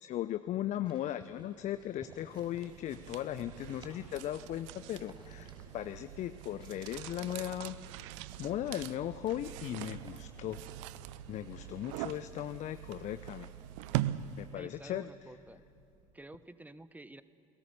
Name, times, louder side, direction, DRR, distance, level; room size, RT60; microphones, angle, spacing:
voice 1, 0.0-7.8 8.4-10.6 11.3-13.5 14.4-15.1, left 12 dB, 45° left, 12 dB, 0.6 m, -37 dB
sound 1, 0.8-14.2, right 2 dB, 30° right, 6.2 m, -59 dB
Church bell, 1.4-16.3, left 2 dB, 70° left, 7.0 m, -66 dB
sound 2, 2.3-14.7, right 14 dB, 65° right, 0.6 m, -42 dB
voice 2, 14.5-15.6 16.1-17.2, right 2 dB, 10° right, 15 dB, 1.0 m, -50 dB
29.5 x 17.5 x 6.8 m, 2.5 s
figure-of-eight pair, 60°, 17 cm